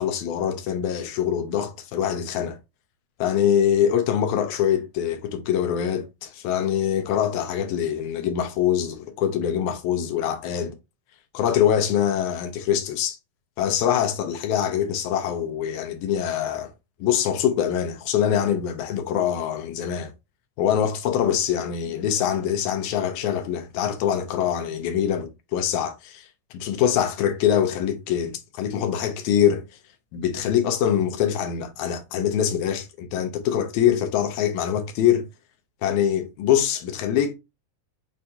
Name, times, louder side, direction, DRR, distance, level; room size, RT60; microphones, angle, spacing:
voice 1, 0.0-2.6 3.2-10.8 11.3-13.2 13.6-16.7 17.0-20.1 20.6-29.7 30.1-35.3 35.8-37.3, left 9 dB, 90° left, 2.1 m, -24 dB
6.6 x 2.7 x 2.2 m
omnidirectional pair, 3.3 m